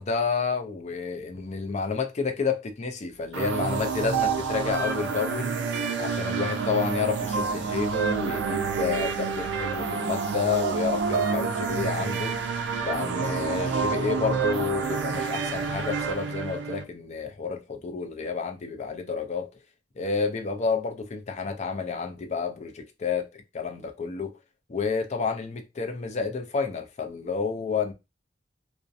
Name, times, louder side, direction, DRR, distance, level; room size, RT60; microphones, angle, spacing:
voice 1, 0.0-5.5 6.0-12.4 12.8-19.5 20.0-24.4 24.7-27.9, left 5 dB, 40° left, 0.4 m, -30 dB
sound 1, 3.3-16.8, right 5 dB, 70° right, 0.4 m, -28 dB
2.6 x 2.1 x 2.4 m
head